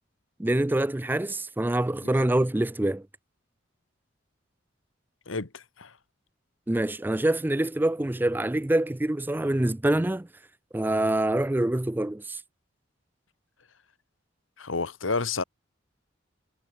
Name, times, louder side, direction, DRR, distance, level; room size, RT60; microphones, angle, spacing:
voice 1, 0.4-3.0 6.7-10.3 10.7-12.4, right 1 dB, 10° right, 0.4 m, -25 dB
voice 2, 5.3-5.9 14.6-15.4, left 4 dB, 85° left, 1.6 m, -30 dB
head